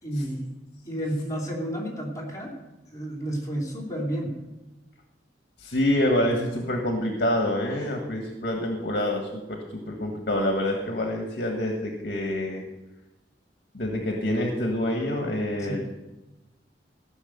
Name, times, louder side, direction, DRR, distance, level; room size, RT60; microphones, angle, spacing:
voice 1, 0.0-0.5 0.8-2.6 2.9-4.4 15.6-15.8, equal, 20° left, -2 dB, 2.9 m, -31 dB
voice 2, 5.6-12.6 13.7-15.8, left 1 dB, 55° left, 2 dB, 1.5 m, -26 dB
14.5 x 6.4 x 8.0 m, 1.0 s
head